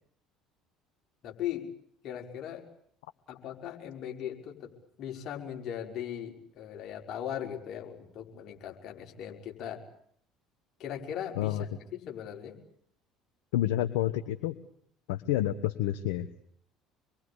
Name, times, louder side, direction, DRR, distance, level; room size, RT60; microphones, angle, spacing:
voice 1, 1.2-1.7 2.0-2.6 3.3-4.7 5.0-9.8 10.8-12.6, left 10 dB, 55° left, 2 dB, 5.3 m, -39 dB
voice 2, 13.5-14.6 15.1-16.3, left 13 dB, 75° left, 10 dB, 1.3 m, -29 dB
27.0 x 22.5 x 8.5 m, 0.66 s
hypercardioid pair, 60°, 0 cm